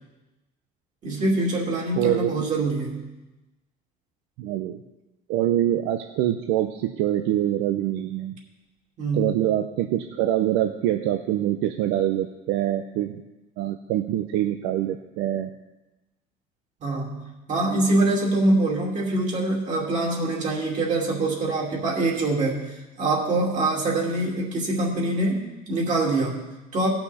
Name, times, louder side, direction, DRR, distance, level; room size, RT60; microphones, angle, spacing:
voice 1, 1.0-3.0 9.0-9.4 16.8-17.2 17.5-26.9, right 2 dB, 45° right, -3 dB, 2.7 m, -24 dB
voice 2, 2.0-2.4 4.4-4.8 5.3-8.3 9.1-13.2 13.6-15.5, right 12 dB, 80° right, 6 dB, 0.6 m, -25 dB
16.5 x 5.8 x 4.2 m, 1.1 s
cardioid pair, 115°, 18 cm